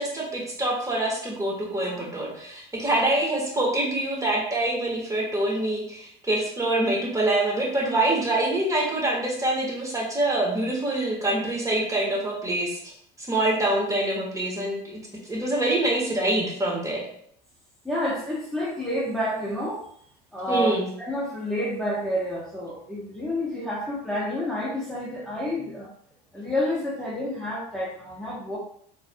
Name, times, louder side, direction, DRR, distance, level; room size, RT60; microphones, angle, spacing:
voice 1, 0.0-12.9 13.2-17.0 20.5-20.9, right 1 dB, 15° right, -3 dB, 1.8 m, -25 dB
voice 2, 17.8-19.8 20.3-25.9 26.3-28.6, left 1 dB, ahead, -7 dB, 1.3 m, -29 dB
4.7 x 4.0 x 2.4 m, 0.64 s
supercardioid pair, 85°, 20 cm